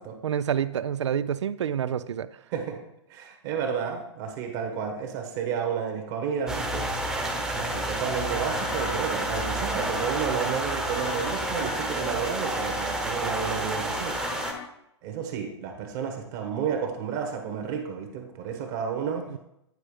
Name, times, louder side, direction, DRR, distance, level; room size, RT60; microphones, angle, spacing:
voice 1, 0.2-2.3 19.3-19.4, right 9 dB, 75° right, 16 dB, 0.4 m, -28 dB
voice 2, 3.1-6.8 7.5-14.2 15.0-19.2, right 7 dB, 45° right, 3 dB, 1.3 m, -31 dB
sound 1, 6.5-14.5, right 1 dB, 5° right, 0.9 m, -30 dB
sound 2, 7.7-14.7, left 8 dB, 35° left, 0.6 m, -41 dB
9.6 x 4.9 x 3.3 m, 0.82 s
hypercardioid pair, 120°, 15 cm